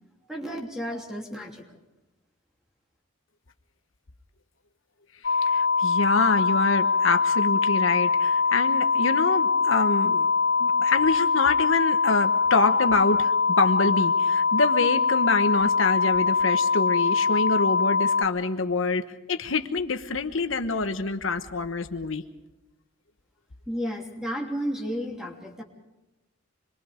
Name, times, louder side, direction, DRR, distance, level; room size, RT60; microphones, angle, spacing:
voice 1, 0.3-1.6 23.7-25.6, equal, 5° right, 1 dB, 2.9 m, -32 dB
voice 2, 5.2-10.3 10.6-22.2, left 3 dB, 75° left, 8 dB, 1.1 m, -26 dB
sound 1, 5.2-18.2, left 5 dB, 55° left, 1.1 m, -23 dB
26.5 x 22.5 x 5.1 m, 1.0 s
head